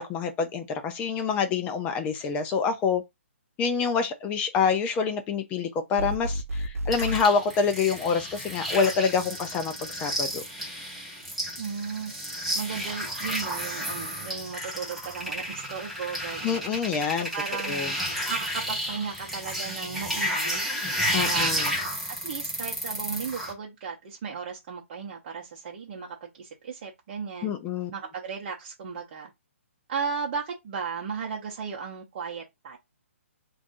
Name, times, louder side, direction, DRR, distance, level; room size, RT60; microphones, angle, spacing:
voice 1, 0.0-3.0 3.6-10.4 16.4-17.3 17.6-17.9 21.1-21.7 27.4-27.9, left 5 dB, 15° left, 0.4 m, -26 dB
sound 1, 6.0-7.3, equal, 90° right, 0.4 m, -31 dB
sound 2, 6.9-23.5, equal, ahead, 0.9 m, -32 dB
voice 2, 11.6-12.1 12.5-16.6 17.3-17.9 18.3-20.6 21.1-21.6 22.2-27.5 27.9-29.3 29.9-32.8, right 6 dB, 35° right, 0.7 m, -35 dB
2.5 x 2.4 x 3.6 m
hypercardioid pair, 150°, 7 cm